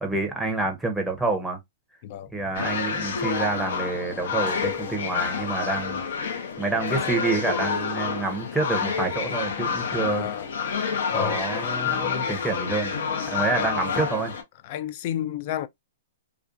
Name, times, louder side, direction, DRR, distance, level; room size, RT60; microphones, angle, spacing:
voice 1, 0.0-1.6 2.3-6.0 6.6-10.3 11.1-12.9 13.3-14.3, right 3 dB, 5° right, 0.6 m, -28 dB
sound 1, 2.5-14.4, left 6 dB, 70° left, 0.7 m, -28 dB
voice 2, 10.0-10.5 11.1-11.4 13.4-13.7 14.6-15.7, left 11 dB, 45° left, 0.3 m, -31 dB
2.4 x 2.3 x 2.5 m
hypercardioid pair, 140°, 0 cm